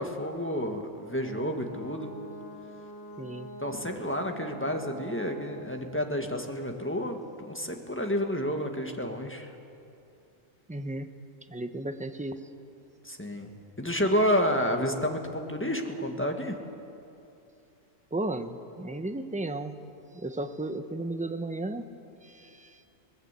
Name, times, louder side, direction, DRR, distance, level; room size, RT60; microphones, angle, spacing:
voice 1, 0.0-2.1 3.6-9.5 13.0-13.5 13.8-16.6, equal, 10° left, 3 dB, 1.6 m, -30 dB
Brass instrument, 1.2-5.7, right 2 dB, 85° right, 6.7 m, -44 dB
voice 2, 3.2-3.5 10.7-11.1 11.5-12.4 18.1-19.8 20.1-21.8 22.2-22.8, right 2 dB, 5° right, 8 dB, 0.8 m, -34 dB
22.5 x 19.0 x 8.2 m, 2.7 s
omnidirectional pair, 1.3 m